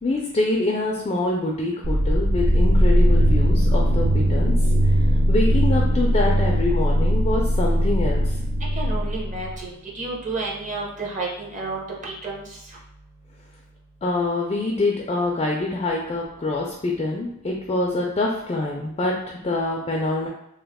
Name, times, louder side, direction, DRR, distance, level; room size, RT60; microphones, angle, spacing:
voice 1, 0.0-4.5 4.8-4.9 5.3-8.3 14.0-20.3, left 2 dB, 25° left, -1 dB, 0.4 m, -25 dB
sound 1, 1.8-9.7, equal, 70° right, 0.5 m, -19 dB
voice 2, 8.8-12.4, right 3 dB, 35° right, -3 dB, 0.8 m, -31 dB
3.0 x 2.1 x 3.5 m, 0.80 s
head